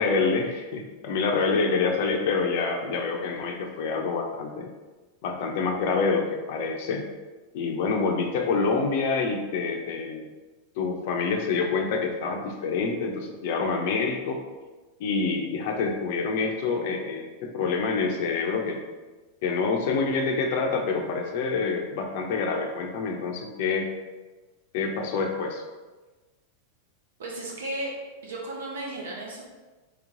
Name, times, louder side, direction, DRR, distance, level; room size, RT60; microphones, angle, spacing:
voice 1, 0.0-4.7 5.2-7.0 7.5-10.2 10.8-14.4 15.0-18.8 19.4-23.9 24.7-25.6, left 4 dB, 60° left, 2 dB, 0.7 m, -27 dB
voice 2, 27.2-27.9 28.2-29.4, right 1 dB, 75° right, -2 dB, 1.0 m, -34 dB
3.3 x 3.1 x 3.8 m, 1.2 s
hypercardioid pair, 100°, 0 cm